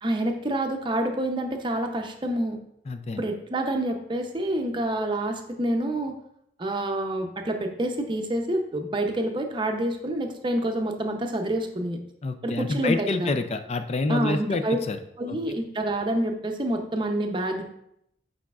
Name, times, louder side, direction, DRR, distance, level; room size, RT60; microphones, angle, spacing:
voice 1, 0.0-2.6 3.2-6.2 6.6-12.0 12.4-13.3 14.1-14.8 15.2-17.6, right 1 dB, 25° right, 4 dB, 0.6 m, -27 dB
voice 2, 2.9-3.2 12.2-15.0 15.3-15.4, left 3 dB, 35° left, 8 dB, 0.4 m, -27 dB
8.4 x 4.9 x 2.4 m, 0.76 s
head